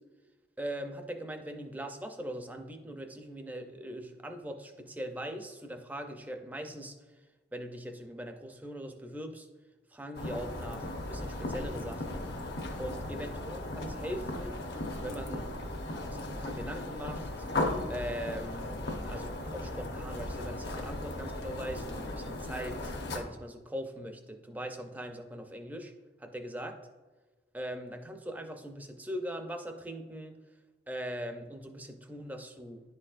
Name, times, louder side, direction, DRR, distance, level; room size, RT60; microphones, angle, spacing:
voice 1, 0.6-6.9 7.5-9.5 9.9-12.3 12.8-14.6 15.0-15.5 16.1-17.3 17.9-25.9 26.2-26.8 27.5-30.3 30.9-32.8, equal, 10° right, 5 dB, 0.4 m, -41 dB
sound 1, 10.1-23.2, left 1 dB, 65° left, 0.9 m, -37 dB
sound 2, 13.8-19.3, equal, 80° left, 1.4 m, -51 dB
10.5 x 4.3 x 2.4 m, 1.3 s
head